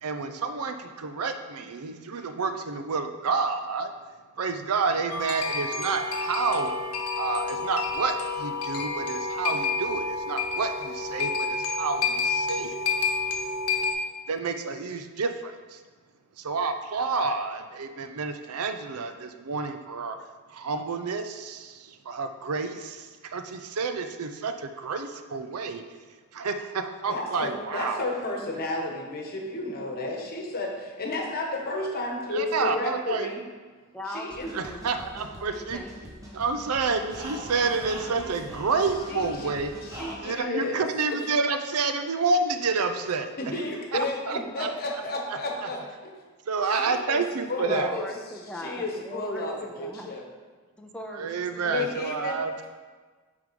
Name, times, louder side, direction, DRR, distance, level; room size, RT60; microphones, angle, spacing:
voice 1, 0.0-3.9 4.4-6.7 7.2-12.7 14.3-15.8 16.4-20.2 20.5-25.8 26.3-28.0 32.3-33.3 34.5-35.8 36.3-39.7 40.2-43.3 43.9-44.7 46.5-47.9 51.1-52.7, right 4 dB, 85° right, 7 dB, 0.6 m, -29 dB
sound 1, 5.1-13.9, left 4 dB, 85° left, 0.9 m, -29 dB
voice 2, 27.1-33.4 34.1-34.6 39.1-39.5 39.8-40.9 41.2-41.3 42.9-43.1 43.4-46.1 46.6-47.2 47.5-48.0 48.5-50.2 51.6-52.5, left 2 dB, 45° left, 0 dB, 1.2 m, -32 dB
voice 3, 33.9-36.2 47.7-50.1 50.8-51.9, left 1 dB, 5° left, 1 dB, 0.5 m, -40 dB
sound 2, 34.3-40.1, right 1 dB, 15° right, 1.2 m, -42 dB
7.9 x 3.7 x 5.2 m, 1.4 s
head